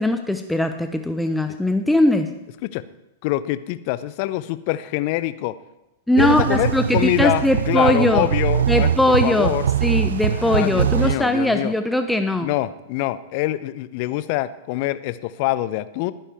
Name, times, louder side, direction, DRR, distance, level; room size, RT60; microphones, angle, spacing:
voice 1, 0.0-2.3 6.1-8.3 8.7-9.5 9.8-12.5, left 1 dB, 5° left, 7 dB, 0.8 m, -20 dB
voice 2, 3.2-5.6 6.2-9.7 10.3-11.7 12.4-16.1, left 16 dB, 45° left, 16 dB, 0.7 m, -25 dB
sound 1, 6.2-11.2, right 9 dB, 65° right, 0.4 m, -22 dB
19.5 x 10.0 x 3.5 m, 0.93 s
figure-of-eight pair, 100°, 0 cm